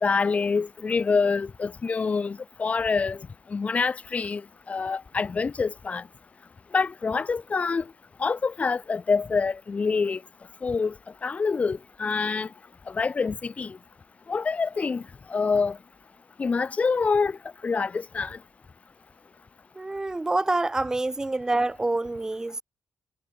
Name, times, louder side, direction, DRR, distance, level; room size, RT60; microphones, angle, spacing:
voice 1, 0.0-3.2 3.5-4.4 4.7-6.0 6.7-7.8 8.2-10.2 10.6-10.9 11.2-12.5 12.9-13.8 14.3-15.0 15.3-15.8 16.4-17.4 17.6-18.4, left 4 dB, 30° left, 0.7 m, -26 dB
voice 2, 19.8-22.6, right 2 dB, 15° right, 0.7 m, -27 dB
wide cardioid pair, 135°, 4 cm